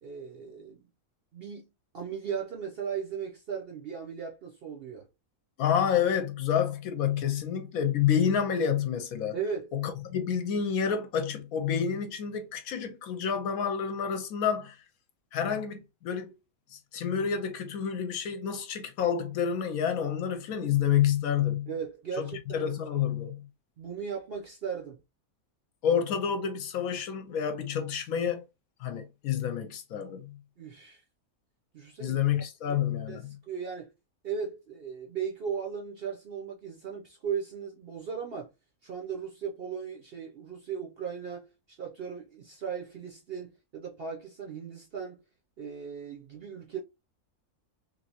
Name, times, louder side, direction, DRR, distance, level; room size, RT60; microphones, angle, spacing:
voice 1, 0.0-0.9 1.3-5.1 9.3-9.7 21.7-22.7 23.8-25.0 30.6-31.0 31.7-32.2 32.7-32.8 33.1-33.2 33.5-33.9 34.2-38.5 38.8-45.2 45.6-46.8, right 6 dB, 55° right, 0.7 m, -37 dB
voice 2, 5.6-9.4 9.7-14.8 15.3-16.3 16.7-21.7 22.2-23.5 25.8-28.4 28.8-30.4 32.0-33.4, left 8 dB, 75° left, 1.1 m, -29 dB
3.3 x 2.7 x 2.7 m
omnidirectional pair, 1.6 m